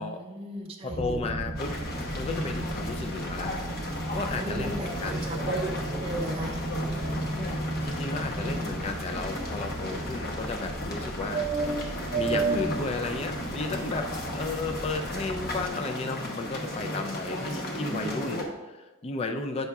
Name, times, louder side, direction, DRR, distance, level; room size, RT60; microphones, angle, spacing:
voice 1, 0.0-1.3 4.3-6.6 12.4-12.8 17.4-18.2, right 2 dB, 25° right, 0 dB, 0.5 m, -36 dB
voice 2, 0.8-1.8 2.1-3.6 4.1-5.3 7.4-7.6 7.8-11.4 12.1-19.7, left 3 dB, 30° left, 6 dB, 0.3 m, -34 dB
sound 1, 0.9-15.7, right 2 dB, 45° right, 0.9 m, -34 dB
sound 2, 1.6-18.4, left 1 dB, 50° left, 0.9 m, -35 dB
7.9 x 5.6 x 2.3 m, 1.2 s
head